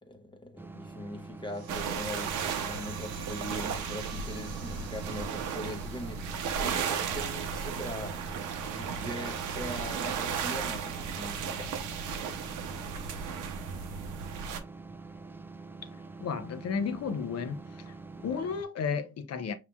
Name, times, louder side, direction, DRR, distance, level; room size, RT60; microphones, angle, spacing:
voice 1, 0.0-6.3 6.6-8.2 8.7-11.8 18.1-18.5, left 1 dB, 15° left, 0.8 m, -41 dB
sound 1, 0.6-18.6, right 3 dB, 10° right, 0.3 m, -46 dB
sound 2, 1.5-12.5, right 7 dB, 50° right, 1.1 m, -50 dB
sound 3, 1.7-14.6, right 6 dB, 85° right, 0.8 m, -35 dB
voice 2, 16.2-17.9 18.2-19.5, left 6 dB, 55° left, 0.8 m, -33 dB
5.7 x 3.0 x 2.3 m
cardioid pair, 90°, 30 cm